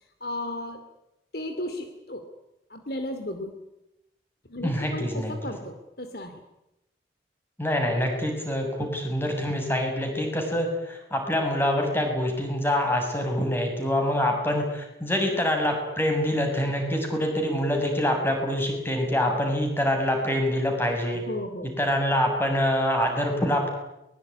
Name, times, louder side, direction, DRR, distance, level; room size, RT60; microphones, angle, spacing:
voice 1, 0.2-0.8 1.3-2.2 2.7-3.6 4.5-6.4 21.2-21.7, left 1 dB, 55° left, 7 dB, 2.7 m, -34 dB
voice 2, 4.6-5.3 7.6-21.2 21.8-23.7, left 1 dB, 15° left, 3 dB, 6.9 m, -25 dB
23.0 x 22.5 x 9.8 m, 0.89 s
head